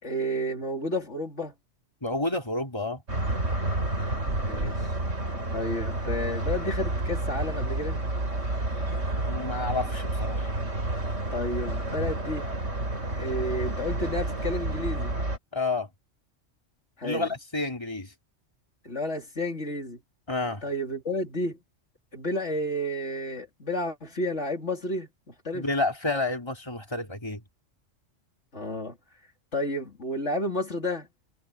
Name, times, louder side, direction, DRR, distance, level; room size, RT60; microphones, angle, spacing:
voice 1, 0.0-1.5 4.4-4.9 5.5-8.0 11.3-12.5 13.2-15.1 17.0-17.3 18.8-20.0 20.6-21.6 22.1-25.7 28.5-29.0 29.5-31.1, left 1 dB, 65° left, 4.0 m, -31 dB
voice 2, 2.0-3.0 9.2-10.5 15.5-15.9 17.0-18.1 20.3-20.6 25.5-27.4, left 2 dB, 20° left, 4.0 m, -30 dB
sound 1, 3.1-15.4, right 2 dB, 70° right, 4.6 m, -30 dB
omnidirectional pair, 1.3 m